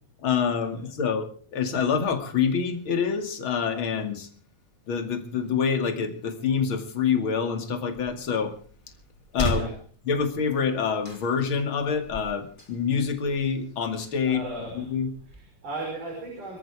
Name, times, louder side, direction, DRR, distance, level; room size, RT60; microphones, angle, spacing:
voice 1, 0.2-4.3 4.9-8.5 9.3-9.7 10.1-14.4 14.7-15.1, left 6 dB, 40° left, 7 dB, 2.8 m, -26 dB
sound 1, 7.9-15.4, equal, 15° left, 2.7 m, -38 dB
voice 2, 14.2-15.0 15.3-16.6, right 2 dB, 70° right, -1 dB, 7.1 m, -36 dB
25.5 x 14.0 x 3.6 m, 0.43 s
omnidirectional pair, 3.7 m